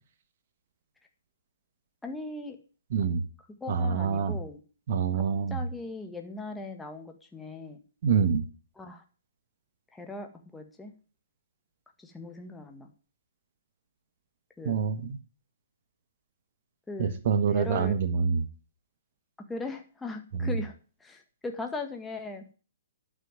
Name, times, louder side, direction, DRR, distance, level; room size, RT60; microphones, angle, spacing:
voice 1, 2.0-2.6 3.6-4.6 5.1-5.2 5.5-7.8 8.8-9.0 9.9-10.9 12.0-12.9 14.6-14.8 16.9-17.1 17.5-18.0 19.5-20.7 21.0-22.4, left 3 dB, 5° left, 3 dB, 1.8 m, -39 dB
voice 2, 2.9-3.2 3.7-4.4 4.9-5.6 8.0-8.4 14.6-15.2 17.0-18.4 20.4-20.5, right 6 dB, 45° right, 9 dB, 1.3 m, -26 dB
11.0 x 6.1 x 9.1 m, 0.38 s
figure-of-eight pair, 120°, 0 cm